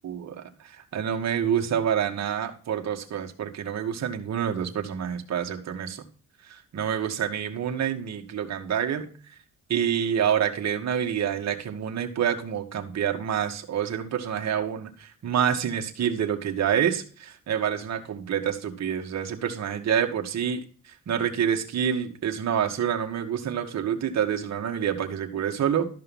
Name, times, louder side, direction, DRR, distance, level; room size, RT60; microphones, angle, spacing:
voice 1, 0.0-6.0 6.5-9.1 9.7-20.6 21.1-25.9, right 8 dB, 60° right, 4 dB, 2.3 m, -27 dB
13.5 x 5.6 x 5.6 m, 0.41 s
cardioid pair, 90°, 30 cm